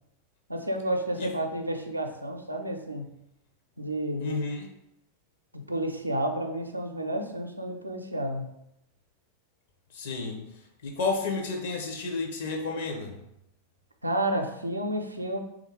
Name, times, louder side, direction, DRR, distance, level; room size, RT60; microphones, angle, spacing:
voice 1, 0.5-3.1 3.8-4.4 5.5-8.5 14.0-15.4, right 1 dB, 85° right, 4 dB, 0.4 m, -31 dB
voice 2, 4.2-4.7 9.9-10.4 10.8-13.2, left 3 dB, 55° left, 2 dB, 0.8 m, -31 dB
3.3 x 2.6 x 4.4 m, 0.83 s
figure-of-eight pair, 90°, 0 cm